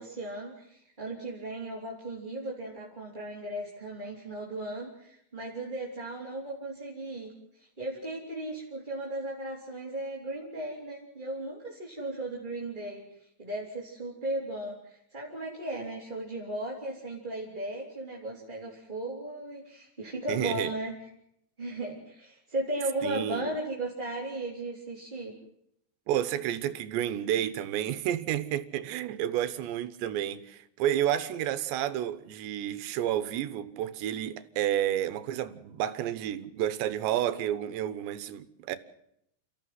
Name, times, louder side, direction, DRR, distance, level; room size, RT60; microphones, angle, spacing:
voice 1, 0.0-20.9 21.6-25.3, right 1 dB, 10° right, 3.2 m, -36 dB
voice 2, 20.3-20.7 23.0-23.4 26.1-38.8, right 11 dB, 80° right, 3.3 m, -30 dB
29.0 x 15.0 x 7.8 m
omnidirectional pair, 5.1 m